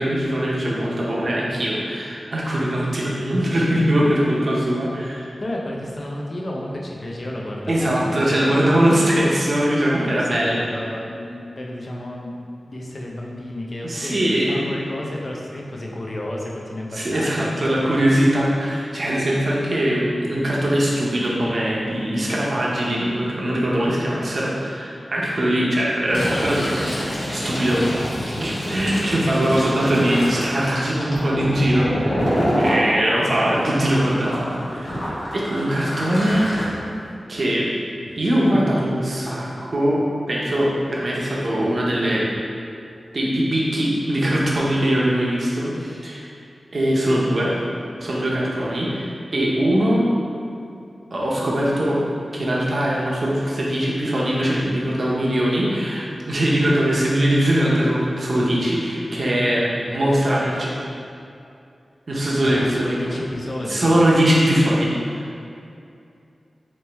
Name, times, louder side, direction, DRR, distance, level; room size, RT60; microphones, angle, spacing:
voice 1, 0.0-5.3 7.3-7.4 7.7-10.7 13.8-14.6 16.9-26.9 27.3-27.8 28.4-32.2 32.6-36.4 37.3-37.7 38.2-40.0 40.3-42.3 43.1-46.3 46.7-47.6 48.0-50.1 51.1-52.0 52.3-60.7 62.1-63.1 63.7-64.9, equal, 50° right, -5 dB, 0.7 m, -21 dB
voice 2, 5.4-8.3 10.0-18.1 19.0-19.2 27.8-29.2 32.4-32.6 38.0-38.1 56.7-56.8 62.4-64.0, left 1 dB, 45° left, -2 dB, 0.5 m, -32 dB
Fill (with liquid), 26.0-32.8 33.3-36.6, equal, 75° left, 1.0 m, -26 dB
3.2 x 3.0 x 3.3 m, 2.6 s
wide cardioid pair, 95°, 0 cm